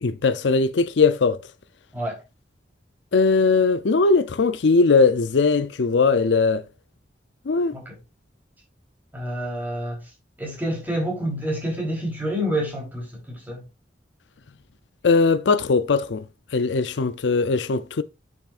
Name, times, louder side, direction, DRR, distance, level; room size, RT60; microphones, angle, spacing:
voice 1, 0.0-1.4 3.1-6.6 7.5-7.8 15.0-16.2 16.5-18.0, left 4 dB, 80° left, 0.5 m, -19 dB
voice 2, 9.1-10.0 10.4-13.6, equal, 10° right, 3.6 m, -28 dB
10.0 x 6.1 x 2.5 m
head